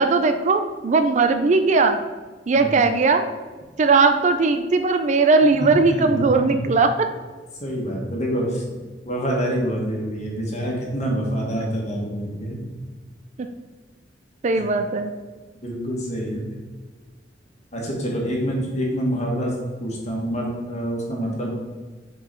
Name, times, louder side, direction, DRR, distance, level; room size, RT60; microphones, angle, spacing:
voice 1, 0.0-2.0 2.5-3.2 3.8-7.1 14.4-15.1, right 3 dB, 40° right, 8 dB, 0.4 m, -18 dB
voice 2, 5.6-6.7 7.6-8.7 9.0-12.7 14.6-14.7 15.6-16.5 17.7-19.5 19.8-21.5, equal, 40° left, -2 dB, 1.6 m, -26 dB
5.7 x 4.7 x 4.4 m, 1.3 s
head